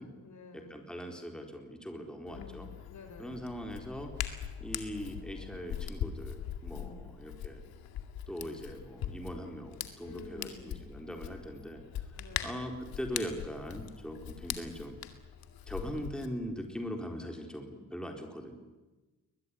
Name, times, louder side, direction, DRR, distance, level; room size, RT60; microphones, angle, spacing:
voice 1, 0.0-0.7 2.3-2.6 2.9-3.4 6.7-7.0 10.0-10.7 12.2-12.5 13.1-13.2, left 4 dB, 55° left, 6 dB, 6.0 m, -50 dB
voice 2, 0.5-2.7 3.2-4.1 4.6-7.6 8.3-12.1 12.4-15.0 15.7-18.6, equal, ahead, 3 dB, 4.3 m, -41 dB
Hands, 2.3-16.3, left 10 dB, 80° left, 2.2 m, -41 dB
21.5 x 21.0 x 9.9 m, 1.2 s
supercardioid pair, 65°, 35 cm